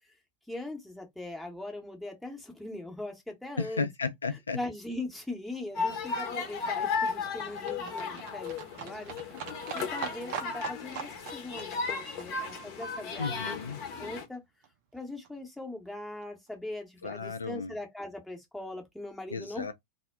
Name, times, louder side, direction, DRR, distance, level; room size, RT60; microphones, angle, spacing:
voice 1, 0.5-3.9 4.5-9.4 9.7-13.6 14.0-14.4 14.9-19.7, left 2 dB, 5° left, 0.8 m, -40 dB
voice 2, 3.6-4.6 13.2-13.8 17.0-17.7 19.3-19.7, left 4 dB, 75° left, 0.4 m, -34 dB
Livestock farm animals working animals, 5.5-13.8 14.0-14.1 14.3-14.4 14.6-14.7 14.9-15.0 15.2-15.3 15.6-15.7 15.9-16.0 16.2-16.3, right 7 dB, 45° right, 0.5 m, -43 dB
sound 1, 5.7-14.2, left 5 dB, 40° left, 0.8 m, -35 dB
2.1 x 2.1 x 3.4 m
figure-of-eight pair, 90°, 0 cm